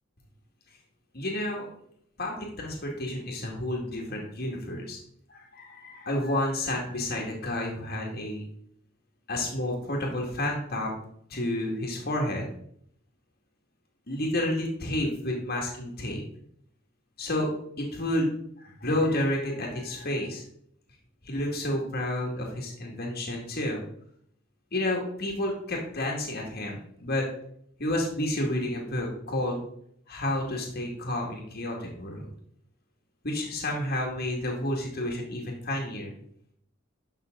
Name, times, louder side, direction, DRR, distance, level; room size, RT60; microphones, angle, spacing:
voice 1, 1.1-1.7 2.2-5.0 5.3-8.5 9.3-10.9 11.3-12.5 14.1-16.2 17.2-17.5 17.8-18.3 18.6-20.4 21.2-23.8 24.7-27.3 27.8-29.6 30.1-32.3 33.2-36.1, left 1 dB, 50° left, 0 dB, 2.1 m, -30 dB
11.5 x 6.0 x 3.9 m, 0.67 s
head